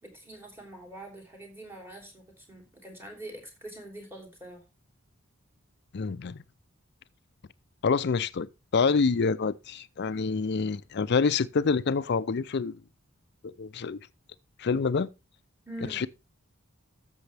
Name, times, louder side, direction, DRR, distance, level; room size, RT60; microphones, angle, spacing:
voice 1, 0.0-4.6 15.7-16.1, right 1 dB, 10° right, 3.1 m, -44 dB
voice 2, 5.9-6.4 7.8-8.5 8.7-12.7 13.4-14.0 14.6-15.1 15.9-16.1, left 5 dB, 55° left, 0.5 m, -27 dB
13.5 x 6.9 x 3.4 m
head